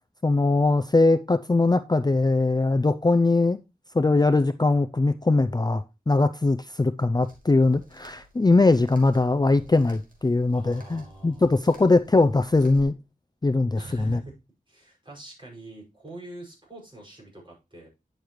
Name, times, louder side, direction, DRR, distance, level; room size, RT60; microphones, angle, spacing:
voice 1, 0.2-3.6 3.9-12.9 13.4-14.2, left 3 dB, 25° left, 0.4 m, -21 dB
sound 1, 7.2-12.8, right 1 dB, 65° right, 2.9 m, -53 dB
voice 2, 10.5-11.5 13.8-14.3 14.7-17.9, right 2 dB, 30° right, 5.8 m, -44 dB
10.0 x 6.5 x 3.1 m
wide cardioid pair, 55°, 15 cm